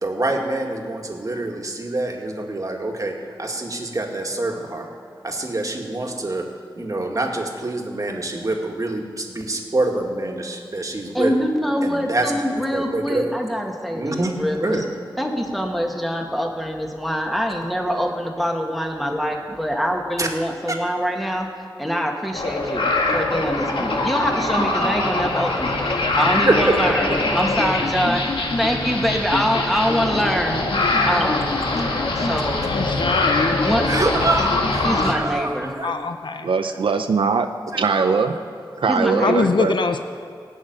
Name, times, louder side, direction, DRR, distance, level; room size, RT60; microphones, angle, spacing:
voice 1, 0.0-3.1 3.4-4.9 5.2-6.4 6.8-11.3 11.8-12.3 12.7-13.3 13.9-14.3 14.6-14.8 20.2-20.3 26.5-26.8 33.0-33.1 33.9-35.9 37.7-38.3, right 2 dB, 40° right, 1 dB, 2.0 m, -25 dB
voice 2, 11.1-14.8 15.2-31.5 32.2-32.9 33.6-33.8 34.8-35.7 38.9-39.5, equal, ahead, 1 dB, 2.0 m, -24 dB
sound 1, 22.3-35.1, left 2 dB, 80° left, 1.6 m, -23 dB
voice 3, 32.6-33.6 35.8-36.5 39.2-40.0, left 4 dB, 65° left, 7 dB, 0.6 m, -23 dB
voice 4, 36.4-38.4 38.8-39.7, right 5 dB, 85° right, 7 dB, 0.6 m, -21 dB
16.5 x 6.5 x 9.5 m, 2.3 s
cardioid pair, 55°, 9 cm